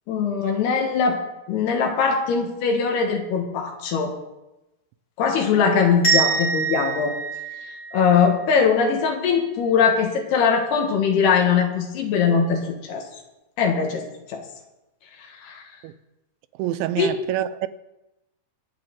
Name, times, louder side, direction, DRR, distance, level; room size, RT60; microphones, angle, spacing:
voice 1, 0.1-1.2 1.5-4.1 5.2-7.1 7.6-13.0 13.6-14.0 14.3-14.4 15.2-15.6 17.0-17.1, left 6 dB, 70° left, 3.3 m, -21 dB
sound 1, 6.0-8.8, right 5 dB, 15° left, 4.6 m, -25 dB
voice 2, 16.6-17.7, right 13 dB, 90° right, 2.9 m, -26 dB
21.5 x 8.4 x 3.9 m
omnidirectional pair, 5.1 m